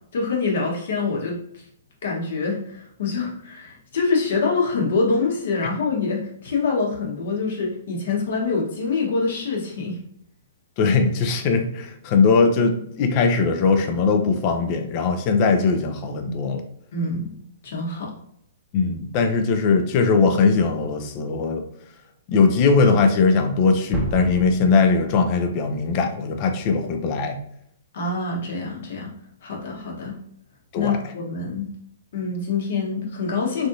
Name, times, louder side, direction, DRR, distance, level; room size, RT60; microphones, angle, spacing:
voice 1, 0.1-1.6 2.0-10.0 16.9-17.3 17.6-18.1 27.9-29.1 29.4-30.2 30.7-31.7 32.1-33.7, left 4 dB, 65° left, -2 dB, 1.1 m, -25 dB
voice 2, 10.8-16.6 18.7-21.7 22.3-27.4 30.7-31.0, left 4 dB, 40° left, 6 dB, 0.5 m, -20 dB
sound 1, 23.9-25.8, right 1 dB, 10° right, 0.8 m, -31 dB
3.4 x 2.6 x 2.5 m, 0.73 s
hypercardioid pair, 130°, 0 cm